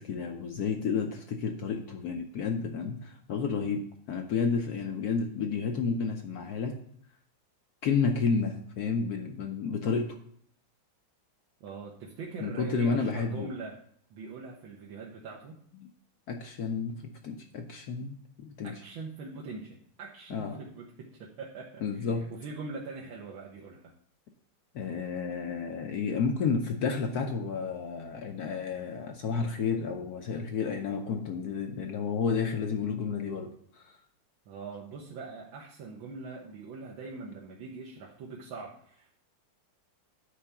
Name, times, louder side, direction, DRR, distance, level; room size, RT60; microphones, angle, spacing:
voice 1, 0.0-6.8 7.8-10.2 12.4-13.5 16.3-18.7 20.3-20.6 21.8-22.3 24.7-33.9, left 5 dB, 65° left, 4 dB, 1.0 m, -31 dB
voice 2, 11.6-13.7 14.1-15.6 18.6-23.9 34.5-39.1, right 4 dB, 75° right, -2 dB, 1.7 m, -42 dB
9.7 x 3.4 x 6.8 m, 0.64 s
omnidirectional pair, 2.3 m